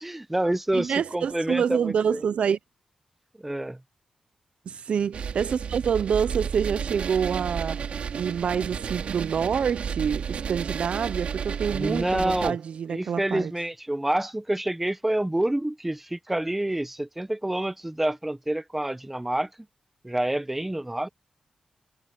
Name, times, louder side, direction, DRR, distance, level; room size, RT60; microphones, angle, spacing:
voice 1, 0.0-2.2 3.4-3.8 11.7-12.6 12.9-19.5 20.0-21.1, right 1 dB, 10° right, 0.9 m, -28 dB
voice 2, 0.7-2.6 4.7-7.8 8.1-13.5, right 7 dB, 65° right, 0.4 m, -27 dB
sound 1, 5.1-12.5, right 7 dB, 85° right, 2.4 m, -32 dB
wide cardioid pair, 175°, 2 cm